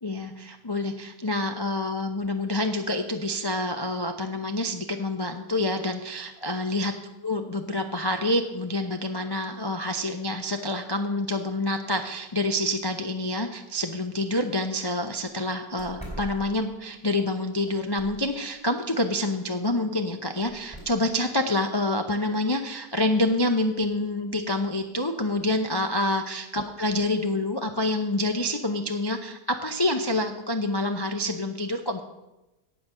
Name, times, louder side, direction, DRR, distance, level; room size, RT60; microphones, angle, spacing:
voice 1, 0.0-6.9 7.2-32.0, left 1 dB, 35° left, 4 dB, 0.4 m, -27 dB
sound 1, 14.2-14.3 14.7-14.8 15.2-15.3 15.8-17.0 17.6-18.4 20.4-20.8, right 1 dB, 5° left, 3.6 m, -42 dB
18.0 x 6.1 x 6.1 m, 0.99 s
omnidirectional pair, 1.7 m